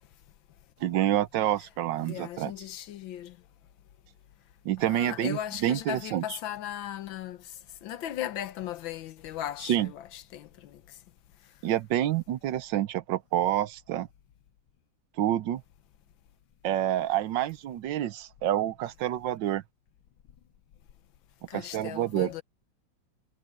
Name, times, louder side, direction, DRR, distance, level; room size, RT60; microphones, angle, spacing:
voice 1, 0.8-2.5 4.6-6.4 9.6-9.9 11.6-14.1 15.2-15.6 16.6-19.6 21.5-22.3, right 12 dB, 75° right, 1.4 m, -28 dB
voice 2, 2.0-3.4 4.8-7.4 7.8-10.8 21.5-22.4, left 11 dB, 90° left, 1.6 m, -37 dB
omnidirectional pair, 2.1 m